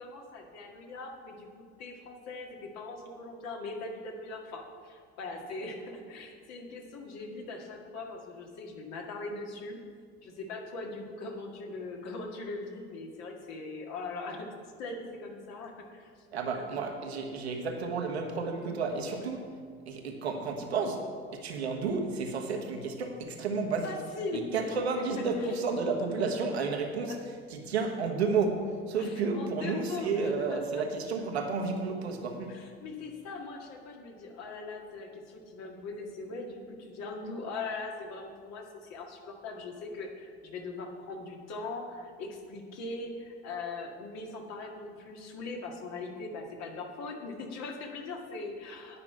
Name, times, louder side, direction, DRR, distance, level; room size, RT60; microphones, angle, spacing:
voice 1, 0.0-9.8 10.2-14.5 14.8-16.1 16.5-16.6 23.8-24.8 27.1-27.2 29.0-30.8 32.5-49.0, left 3 dB, 55° left, 1 dB, 2.1 m, -40 dB
voice 2, 16.3-19.5 19.9-23.9 24.3-32.7, right 4 dB, 80° right, 2 dB, 1.4 m, -32 dB
9.7 x 5.9 x 8.5 m, 2.1 s
figure-of-eight pair, 65°, 32 cm